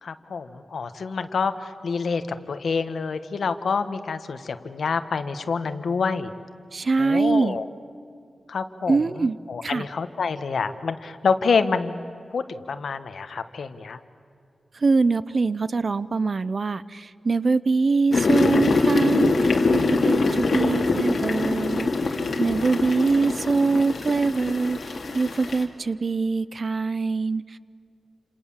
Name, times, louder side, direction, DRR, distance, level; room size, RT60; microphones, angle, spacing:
voice 1, 0.0-6.3 7.0-7.7 8.5-12.0 12.3-14.0, left 5 dB, 75° left, 10 dB, 1.4 m, -27 dB
voice 2, 6.7-7.6 8.9-9.4 9.6-9.9 14.7-21.9 22.4-27.6, right 4 dB, 45° right, 17 dB, 0.6 m, -23 dB
sound 1, 18.1-25.6, left 3 dB, 55° left, 2.8 m, -23 dB
29.0 x 27.5 x 7.4 m, 2.5 s
wide cardioid pair, 160°, 0 cm